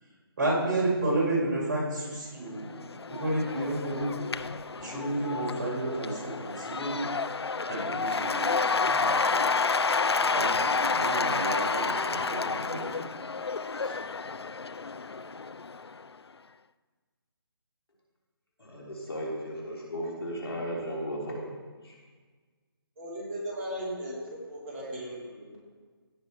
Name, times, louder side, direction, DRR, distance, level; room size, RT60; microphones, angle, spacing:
voice 1, 0.4-4.2 4.8-7.0 7.6-9.5 10.2-13.1, right 2 dB, 45° right, -3 dB, 3.5 m, -31 dB
Cheering / Applause / Crowd, 2.6-16.0, left 4 dB, 90° left, 0.4 m, -30 dB
voice 2, 18.6-21.4 21.8-21.9, equal, 75° left, -3 dB, 3.3 m, -35 dB
voice 3, 23.0-24.2 24.5-25.6, equal, 25° right, -4 dB, 2.5 m, -37 dB
16.0 x 5.6 x 4.5 m, 1.5 s
figure-of-eight pair, 150°, 13 cm